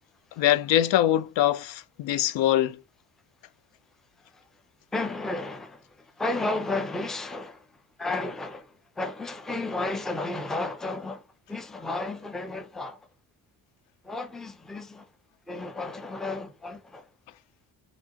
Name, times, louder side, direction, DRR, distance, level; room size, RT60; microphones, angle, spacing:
voice 1, 0.4-2.8, left 12 dB, 90° left, 0.6 m, -23 dB
voice 2, 4.9-7.7 8.0-13.0 14.0-15.1 15.5-17.1, left 2 dB, ahead, 0.4 m, -33 dB
6.0 x 2.7 x 2.8 m
cardioid pair, 130°, 43 cm